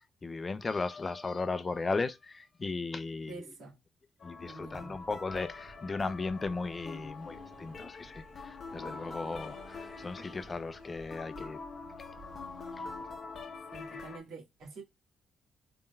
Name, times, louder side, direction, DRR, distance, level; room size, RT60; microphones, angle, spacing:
voice 1, 0.2-3.5 4.2-11.6 12.0-12.1 12.7-12.8, left 3 dB, 30° left, 0.5 m, -36 dB
voice 2, 3.3-3.8 4.4-5.0 13.7-14.8, right 3 dB, 70° right, 2.0 m, -47 dB
sound 1, 4.2-14.2, left 4 dB, 45° left, 0.9 m, -45 dB
Accelerating revving vroom, 4.4-13.1, right 2 dB, 35° right, 2.0 m, -54 dB
4.2 x 3.5 x 2.2 m
cardioid pair, 90°, 0 cm